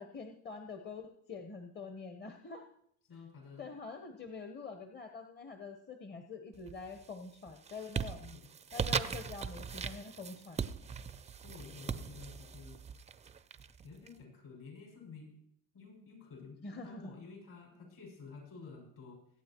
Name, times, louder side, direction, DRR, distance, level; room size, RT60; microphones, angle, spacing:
voice 1, 0.0-2.7 3.6-8.2 8.7-10.6 16.6-17.1, left 4 dB, 30° left, 6 dB, 0.9 m, -46 dB
voice 2, 3.1-3.7 8.2-8.5 11.4-12.8 13.8-15.4 15.7-19.2, left 5 dB, 60° left, 0 dB, 5.9 m, -51 dB
sound 1, 6.6-7.1 7.5-14.1, right 6 dB, 20° right, 0.4 m, -39 dB
22.0 x 8.8 x 3.0 m, 0.68 s
supercardioid pair, 100°, 37 cm